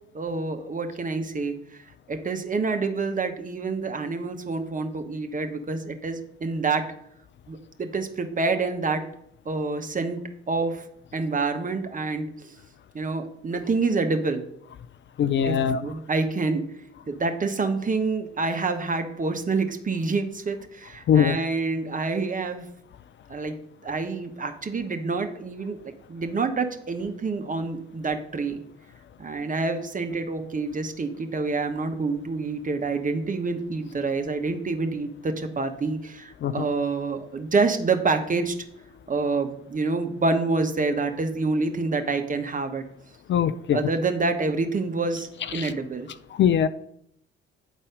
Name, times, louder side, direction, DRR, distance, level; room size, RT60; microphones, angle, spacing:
voice 1, 0.1-1.8 2.1-6.9 7.5-9.0 9.4-10.2 10.5-10.8 11.1-12.5 12.9-14.4 15.4-16.6 17.1-22.6 23.3-23.5 23.8-25.8 26.1-28.6 29.2-38.5 39.1-42.8 43.7-46.1, right 3 dB, 25° right, 6 dB, 1.0 m, -27 dB
voice 2, 15.2-15.8 21.1-21.4 36.4-36.7 43.3-43.8 45.5-45.7 46.4-46.7, left 8 dB, 40° left, 13 dB, 0.4 m, -21 dB
9.1 x 4.1 x 5.0 m, 0.74 s
figure-of-eight pair, 45°, 30 cm